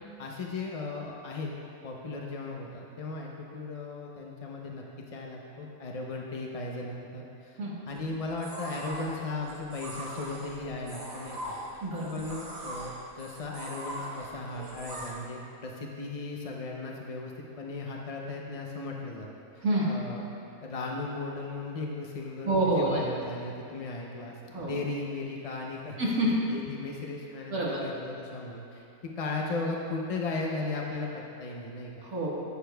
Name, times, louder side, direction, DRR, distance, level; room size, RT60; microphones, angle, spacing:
voice 1, 0.2-4.8 5.1-11.6 12.1-17.3 17.6-19.3 19.5-20.2 20.6-26.0 26.5-28.9 29.2-32.1, left 3 dB, 65° left, -1 dB, 0.3 m, -36 dB
sound 1, 7.9-15.1, right 1 dB, 45° right, 1.5 m, -41 dB
voice 2, 11.8-12.2 19.6-19.9 22.5-22.9 24.5-24.7 26.0-26.3 27.5-27.8 32.0-32.3, right 1 dB, 75° right, -6 dB, 2.1 m, -27 dB
15.0 x 6.7 x 2.3 m, 2.6 s
omnidirectional pair, 1.6 m